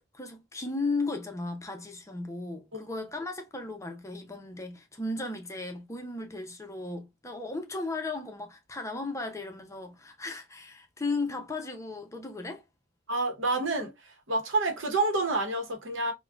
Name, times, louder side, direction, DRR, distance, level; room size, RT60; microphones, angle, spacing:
voice 1, 0.1-12.6, left 3 dB, 15° left, 0.5 m, -35 dB
voice 2, 13.1-13.9 14.3-16.1, right 2 dB, 85° right, 0.9 m, -28 dB
3.5 x 2.2 x 2.3 m
head